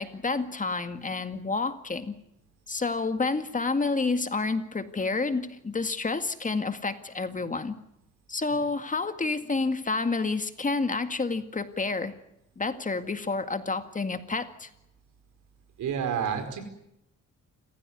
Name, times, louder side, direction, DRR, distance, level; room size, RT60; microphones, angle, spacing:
voice 1, 0.0-2.1 2.7-7.8 8.3-12.1 12.6-14.7, left 3 dB, 25° left, 9 dB, 2.0 m, -29 dB
voice 2, 15.8-16.6, right 7 dB, 75° right, 9 dB, 5.0 m, -29 dB
27.5 x 16.0 x 9.6 m, 0.83 s
cardioid pair, 90°, 30 cm